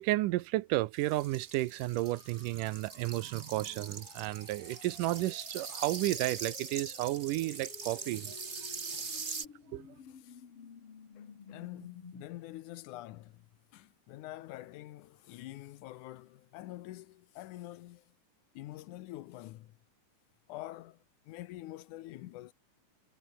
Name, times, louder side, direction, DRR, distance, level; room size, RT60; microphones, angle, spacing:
voice 1, 0.0-8.4 8.9-9.0 9.7-9.9, right 17 dB, 90° right, 2.4 m, -32 dB
sound 1, 1.0-9.4, right 4 dB, 30° right, 1.5 m, -43 dB
sound 2, 1.9-12.3, left 6 dB, 45° left, 3.3 m, -54 dB
voice 2, 8.9-9.4 10.1-10.4 11.2-18.0 18.5-19.8 20.5-22.5, left 15 dB, 75° left, 2.3 m, -47 dB
omnidirectional pair, 3.7 m